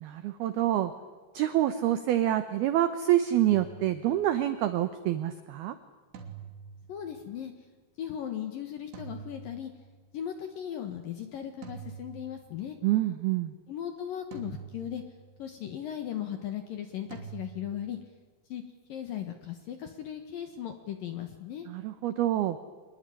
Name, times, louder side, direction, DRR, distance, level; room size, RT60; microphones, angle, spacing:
voice 1, 0.0-0.9 1.3-5.7 12.8-13.5 21.7-22.6, right 13 dB, 85° right, 11 dB, 2.2 m, -27 dB
sound 1, 3.4-4.4 6.1-7.3 8.9-10.1 11.6-12.8 14.3-15.5 17.1-18.0, right 7 dB, 60° right, 4.9 m, -46 dB
voice 2, 6.9-7.5 8.0-9.7 10.1-12.8 13.7-15.0 15.4-18.0 18.5-18.6 18.9-21.7, left 10 dB, 65° left, 7 dB, 2.3 m, -37 dB
25.0 x 21.0 x 10.0 m, 1.4 s
omnidirectional pair, 5.9 m